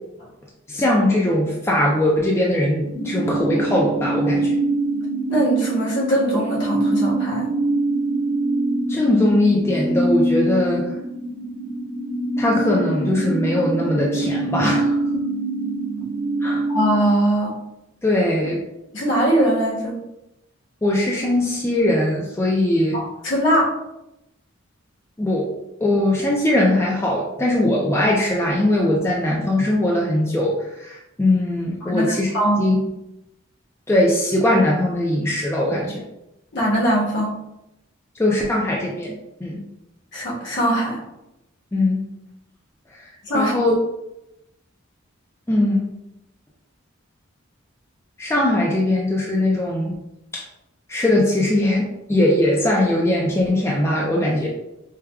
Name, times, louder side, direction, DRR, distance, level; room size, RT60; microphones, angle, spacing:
voice 1, 0.7-4.6 8.9-10.9 12.4-15.2 16.4-16.6 18.0-18.6 20.8-23.0 25.2-25.5 25.8-32.3 32.6-32.8 33.9-36.0 38.2-39.6 41.7-42.0 42.9-43.7 45.5-45.8 48.2-49.9 50.3-50.4 50.9-54.5, left 1 dB, 15° left, -3 dB, 0.3 m, -20 dB
sound 1, 2.9-17.1, right 2 dB, 50° right, 0.8 m, -24 dB
voice 2, 5.3-7.5 16.7-17.5 18.9-19.9 22.9-23.7 31.8-32.6 36.5-37.3 40.1-41.0 43.2-43.5, equal, 60° left, -5 dB, 1.2 m, -21 dB
4.7 x 2.2 x 2.2 m, 0.88 s
head